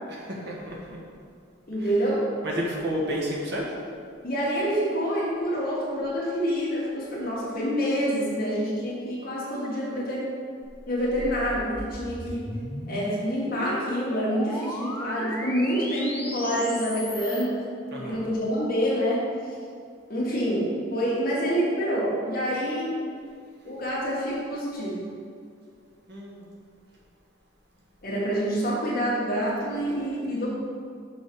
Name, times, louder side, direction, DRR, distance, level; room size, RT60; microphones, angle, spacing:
voice 1, 0.1-1.0 1.8-1.9 2.4-3.7 17.9-18.2 26.1-26.5, equal, 55° right, -3 dB, 1.4 m, -31 dB
voice 2, 1.7-2.2 4.2-10.2 10.9-12.5 12.9-17.5 18.0-19.2 20.1-22.9 23.6-25.0 28.0-30.5, equal, 45° left, -6 dB, 2.0 m, -27 dB
sound 1, 10.6-17.5, left 1 dB, 10° left, 0.7 m, -36 dB
6.6 x 6.2 x 4.7 m, 2.2 s
head